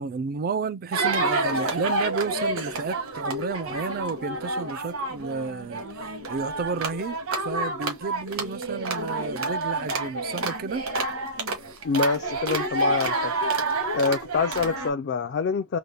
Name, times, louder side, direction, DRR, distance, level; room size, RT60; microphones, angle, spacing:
voice 1, 0.0-7.2 7.4-10.8, right 4 dB, 45° right, 0.4 m, -31 dB
sound 1, 0.9-14.9, right 2 dB, 75° right, 1.4 m, -29 dB
voice 2, 11.8-13.3 13.9-15.8, left 4 dB, 55° left, 0.4 m, -26 dB
4.0 x 2.1 x 3.3 m
head